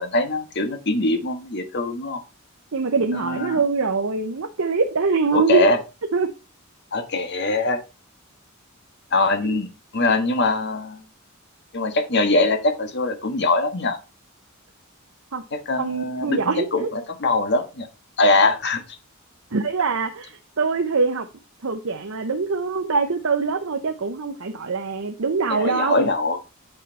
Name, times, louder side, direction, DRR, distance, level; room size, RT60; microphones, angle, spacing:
voice 1, 0.0-2.2 3.1-3.6 5.3-5.8 6.9-7.8 9.1-11.0 11.7-14.0 15.5-17.9 18.2-18.8 25.5-26.4, left 2 dB, 55° left, 1.5 m, -22 dB
voice 2, 2.7-5.7 6.1-6.3 9.4-9.6 15.3-15.4 15.8-16.7 19.5-21.3 21.6-26.1, right 4 dB, 75° right, 0.8 m, -23 dB
8.9 x 5.7 x 4.1 m
head